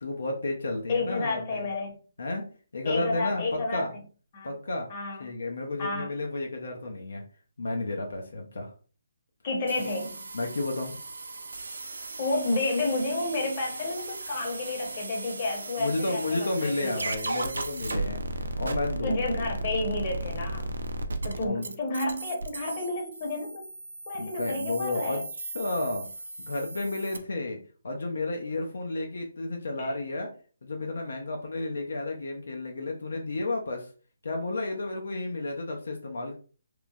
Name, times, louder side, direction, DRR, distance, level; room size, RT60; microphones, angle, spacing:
voice 1, 0.0-1.7 2.2-2.5 2.7-3.9 4.4-4.9 5.2-7.2 7.6-8.7 10.3-10.9 15.8-18.2 18.6-19.3 21.4-21.7 24.2-26.1 26.4-30.3 30.6-33.9 34.2-36.3, left 2 dB, 75° left, 1 dB, 0.5 m, -32 dB
voice 2, 0.9-2.0 2.8-3.9 4.3-4.5 4.9-5.3 5.8-6.1 9.4-10.3 12.2-17.1 19.0-20.7 21.2-23.6 24.1-25.2 29.8-29.9, left 2 dB, 35° left, 0 dB, 0.8 m, -31 dB
sound 1, 9.7-27.2, right 2 dB, 80° right, 0.4 m, -36 dB
3.0 x 2.0 x 2.3 m, 0.39 s
hypercardioid pair, 155°, 0 cm